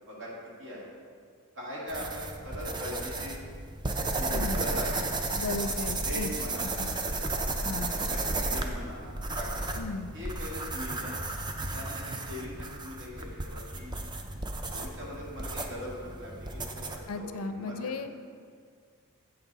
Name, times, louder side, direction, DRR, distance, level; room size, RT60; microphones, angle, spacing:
voice 1, 0.6-0.9 1.5-3.5 4.1-5.0 5.4-5.5 6.0-6.8 7.6-9.9 10.1-11.1 11.7-13.9 14.7-18.0, equal, 60° right, -5 dB, 2.1 m, -41 dB
sound 1, 1.9-17.1, right 2 dB, 20° right, 0.4 m, -34 dB
voice 2, 4.3-4.7 5.4-6.3 6.8-7.0 7.6-7.9 9.8-10.1 17.1-18.1, left 3 dB, 70° left, 10 dB, 0.4 m, -35 dB
7.7 x 6.0 x 4.0 m, 2.1 s
head